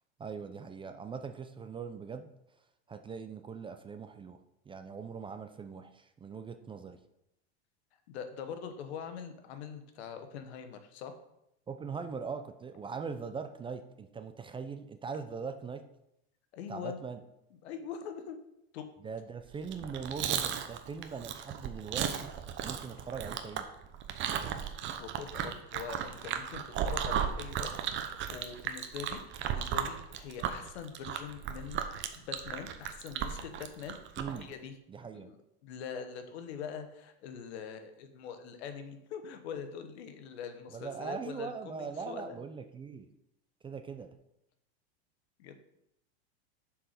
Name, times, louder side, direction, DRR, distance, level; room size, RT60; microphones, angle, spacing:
voice 1, 0.2-2.3 2.9-4.4 4.7-7.0 11.7-15.8 16.7-17.2 19.0-23.7 34.2-34.5 34.9-35.3 40.7-43.1 43.6-44.1, right 5 dB, 15° right, 8 dB, 0.4 m, -41 dB
voice 2, 8.1-11.2 16.5-17.0 17.6-18.4 18.7-18.9 25.0-27.7 28.0-34.0 34.4-34.7 35.2-35.4 35.6-42.4 45.4-45.6, left 7 dB, 75° left, 8 dB, 1.2 m, -43 dB
Chewing mastication, 19.6-34.4, right 9 dB, 35° right, 0.8 m, -35 dB
7.2 x 4.7 x 5.1 m, 0.82 s
supercardioid pair, 115°, 32 cm